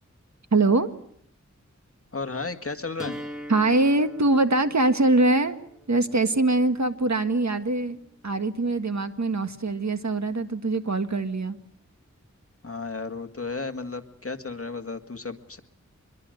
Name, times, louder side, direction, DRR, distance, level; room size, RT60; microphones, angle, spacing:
voice 1, 0.5-0.9 3.5-5.6 5.9-8.0 8.2-11.6, right 2 dB, 65° right, 8 dB, 1.8 m, -23 dB
voice 2, 2.1-3.2 12.6-15.6, left 4 dB, 50° left, 7 dB, 1.9 m, -33 dB
sound 1, 3.0-9.0, equal, ahead, 3.9 m, -44 dB
24.5 x 22.5 x 7.9 m, 0.66 s
wide cardioid pair, 65°, 30 cm